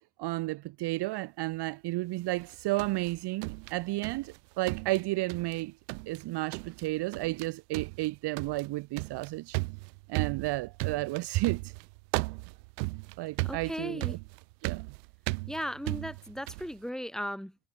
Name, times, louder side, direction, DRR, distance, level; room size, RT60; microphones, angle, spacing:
voice 1, 0.2-5.7 6.1-9.6 10.1-11.7 13.2-14.0 14.6-14.8, right 19 dB, 55° right, 0.8 m, -32 dB
sound 1, 2.4-4.4 4.7-5.6 5.9-6.2 6.5-6.9 7.1-7.5 7.7-16.7, right 30 dB, 90° right, 3.9 m, -36 dB
voice 2, 13.4-14.2 15.5-17.6, equal, ahead, 7.0 m, -37 dB
supercardioid pair, 110°, 49 cm